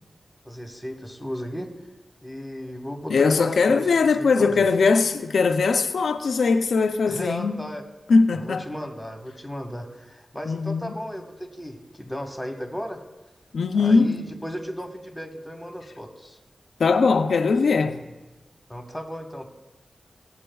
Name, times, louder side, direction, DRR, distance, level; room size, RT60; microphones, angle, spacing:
voice 1, 0.4-1.7 2.2-4.7 7.1-7.8 8.3-13.0 13.7-16.4 18.7-19.5, equal, 5° left, 1.3 m, -35 dB
voice 2, 3.1-7.7 8.1-8.6 10.5-10.9 13.5-14.3 16.8-18.0, left 4 dB, 85° left, 0.5 m, -20 dB
16.0 x 8.5 x 2.3 m
cardioid pair, 50°, 0 cm